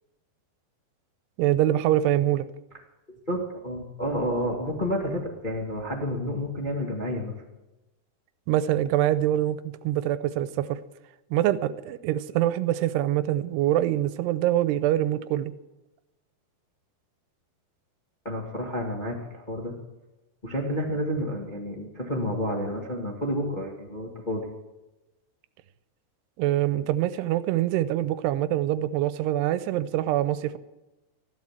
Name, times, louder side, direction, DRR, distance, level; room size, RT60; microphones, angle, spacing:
voice 1, 1.4-2.5 8.5-10.8 11.3-15.5 26.4-30.6, right 13 dB, 85° right, 14 dB, 2.8 m, -24 dB
voice 2, 3.3-7.3 18.2-19.7 20.4-24.4, equal, 25° left, -1 dB, 1.0 m, -30 dB
15.5 x 12.0 x 7.5 m, 1.0 s
omnidirectional pair, 4.7 m